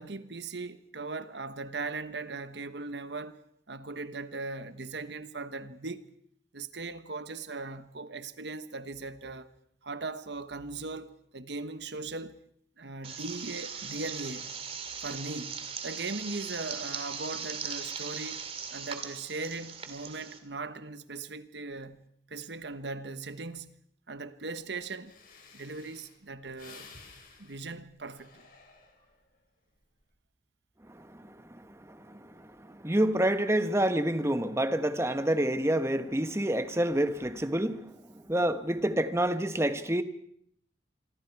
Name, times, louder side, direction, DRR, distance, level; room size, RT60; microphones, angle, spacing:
voice 1, 0.0-6.0 6.5-9.5 9.8-12.4 12.8-14.5 15.0-22.0 22.3-23.7 24.1-25.1 25.5-26.9 27.4-28.4, right 3 dB, 65° right, 1.3 m, -39 dB
sound 1, 13.0-20.4, right 6 dB, 35° right, 2.4 m, -39 dB
Breathing, 25.0-29.3 29.8-30.1, left 4 dB, 50° left, 5.5 m, -54 dB
voice 2, 30.9-40.0, right 1 dB, 15° right, 1.2 m, -28 dB
26.5 x 23.5 x 4.7 m
head